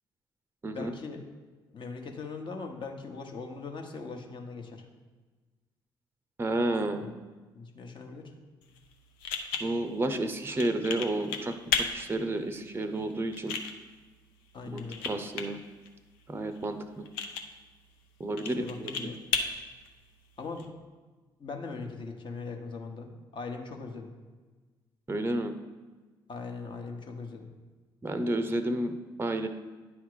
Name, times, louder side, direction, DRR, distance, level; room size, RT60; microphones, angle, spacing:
voice 1, 0.7-1.2 1.7-4.8 7.0-7.1 7.5-8.3 14.5-15.1 18.4-19.2 20.4-20.7 21.4-24.1 26.3-27.5, left 4 dB, 40° left, 3 dB, 1.1 m, -40 dB
voice 2, 6.4-7.0 9.6-13.6 14.7-15.6 16.3-17.1 18.2-19.1 25.1-25.5 28.0-28.9 29.2-29.5, right 1 dB, 20° right, 9 dB, 0.6 m, -31 dB
sound 1, 8.6-20.6, left 6 dB, 75° left, 0.6 m, -37 dB
9.6 x 3.5 x 4.9 m, 1.3 s
figure-of-eight pair, 45°, 12 cm